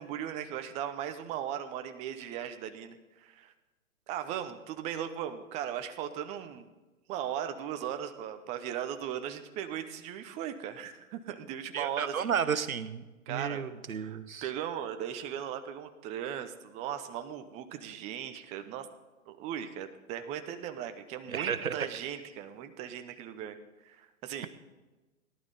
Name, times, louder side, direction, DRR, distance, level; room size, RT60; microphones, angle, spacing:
voice 1, 0.0-3.5 4.1-6.7 7.1-12.6 13.3-13.6 13.9-18.9 19.3-23.6 23.8-24.5, right 10 dB, 15° right, 8 dB, 0.6 m, -38 dB
voice 2, 11.7-14.5 21.3-21.9, right 7 dB, 85° right, 11 dB, 1.1 m, -33 dB
18.5 x 11.5 x 4.1 m, 1.2 s
hypercardioid pair, 130°, 41 cm